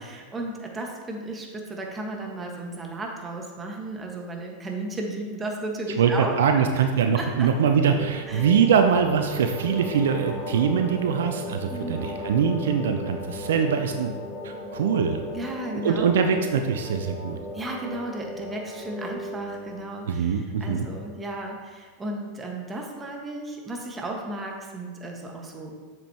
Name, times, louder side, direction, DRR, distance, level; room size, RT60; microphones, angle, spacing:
voice 1, 0.0-6.8 7.1-7.5 8.3-8.5 11.7-12.1 15.3-16.1 17.5-25.7, right 2 dB, 20° right, 0 dB, 1.5 m, -34 dB
voice 2, 6.0-14.1 14.4-15.2 15.7-17.4 20.0-20.9, right 7 dB, 75° right, 6 dB, 0.5 m, -23 dB
sound 1, 7.7-19.9, left 1 dB, 10° left, 2.0 m, -36 dB
7.5 x 7.1 x 2.9 m, 1.5 s
hypercardioid pair, 100°, 0 cm